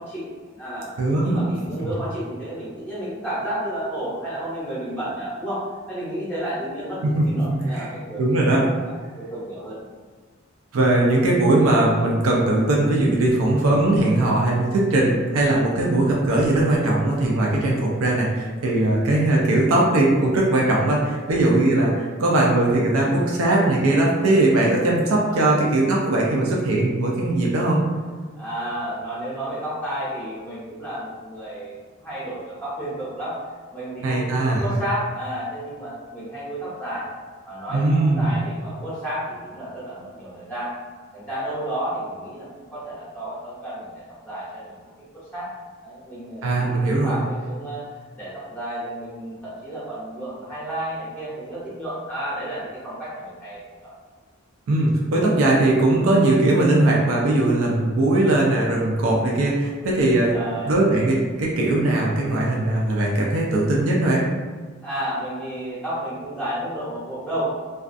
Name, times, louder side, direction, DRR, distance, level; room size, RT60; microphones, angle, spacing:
voice 1, 0.0-0.9 1.2-8.5 8.8-9.8 25.3-25.5 28.4-33.4 33.7-37.0 37.5-40.7 41.1-44.8 45.3-45.5 45.8-47.8 48.2-53.9 60.2-60.7 64.8-67.5, right 1 dB, 5° left, -10 dB, 0.6 m, -32 dB
voice 2, 1.0-1.4 7.0-7.9 8.2-8.6 10.7-27.8 34.0-34.6 37.7-38.3 46.4-47.2 54.7-60.3 60.7-64.2, right 2 dB, 75° right, -3 dB, 0.4 m, -20 dB
2.3 x 2.3 x 2.5 m, 1.5 s
head